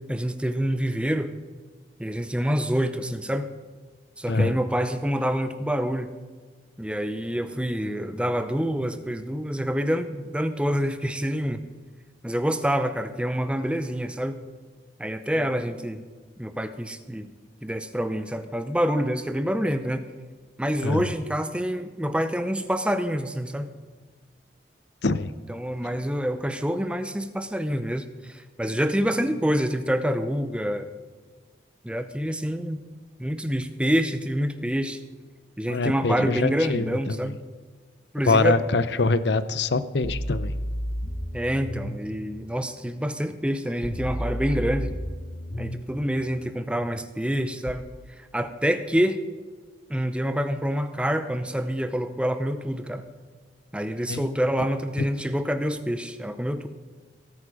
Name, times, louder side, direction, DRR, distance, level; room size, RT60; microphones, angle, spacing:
voice 1, 0.1-1.3 2.0-3.5 4.2-6.1 6.8-11.6 12.2-14.4 15.0-16.0 16.4-17.3 17.6-20.0 20.6-23.7 25.5-30.9 31.8-32.8 33.2-35.0 35.6-37.3 38.1-38.6 41.3-44.9 45.6-47.9 48.3-49.2 49.9-53.1 53.7-56.7, equal, 5° right, 10 dB, 0.7 m, -27 dB
voice 2, 4.3-4.6 20.8-21.1 25.0-25.3 35.7-37.2 38.3-40.5 54.0-54.3 55.0-55.1, left 3 dB, 65° left, 14 dB, 0.6 m, -24 dB
sound 1, 40.0-42.0 43.8-45.8 47.7-47.8, equal, 30° left, 1.1 m, -31 dB
18.0 x 8.8 x 5.0 m, 1.5 s
head